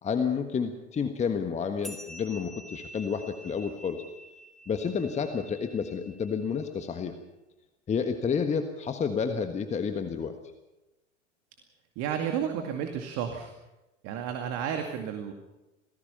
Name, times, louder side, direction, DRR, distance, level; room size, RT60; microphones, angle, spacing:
voice 1, 0.0-4.0 4.7-7.1 7.9-10.4, left 6 dB, 20° left, 7 dB, 1.5 m, -30 dB
sound 1, 1.8-6.7, equal, ahead, 2.5 m, -48 dB
voice 2, 12.0-13.5 14.0-15.3, right 8 dB, 40° right, 5 dB, 2.3 m, -32 dB
27.5 x 18.5 x 5.7 m, 1.0 s
figure-of-eight pair, 85°, 37 cm